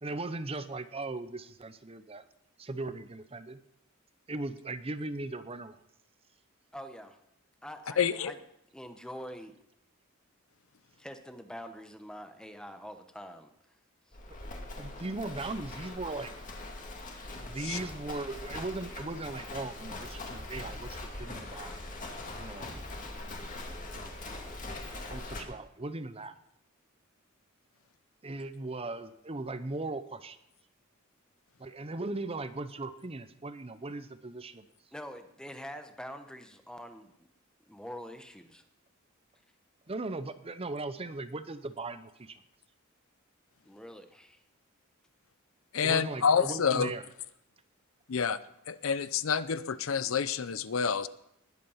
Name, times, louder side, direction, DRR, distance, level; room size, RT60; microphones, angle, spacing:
voice 1, 0.0-2.2 2.6-3.6 4.3-5.8 14.8-16.3 17.4-21.7 22.4-22.8 23.2-23.6 23.9-24.2 24.7-26.4 28.2-30.4 31.6-34.7 39.9-42.4 45.8-47.0, right 2 dB, 30° right, 12 dB, 0.7 m, -38 dB
voice 2, 6.7-7.2 7.6-8.4 8.7-9.6 11.0-13.5 14.1-14.2 34.9-37.1 37.7-38.6 43.6-44.4, equal, 5° left, 8 dB, 1.0 m, -45 dB
voice 3, 8.0-8.3 17.7-17.8 45.7-46.9 48.1-48.4 48.7-51.1, left 6 dB, 70° left, 15 dB, 0.6 m, -28 dB
Livestock farm animals working animals, 14.1-25.4, left 2 dB, 40° left, 2.3 m, -42 dB
20.0 x 8.3 x 5.7 m, 0.80 s
head